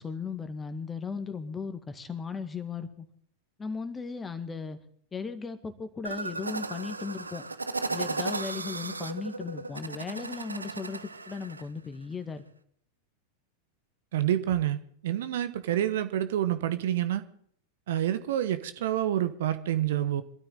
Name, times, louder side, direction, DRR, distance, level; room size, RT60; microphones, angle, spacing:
voice 1, 0.0-3.1 3.6-4.8 5.1-7.5 7.9-12.4, left 5 dB, 15° left, 1.9 m, -36 dB
sound 1, 6.0-11.6, right 3 dB, 80° right, 0.9 m, -35 dB
voice 2, 14.1-17.2 17.9-20.2, right 11 dB, 55° right, 1.1 m, -28 dB
23.0 x 13.0 x 3.9 m
figure-of-eight pair, 90°, 0 cm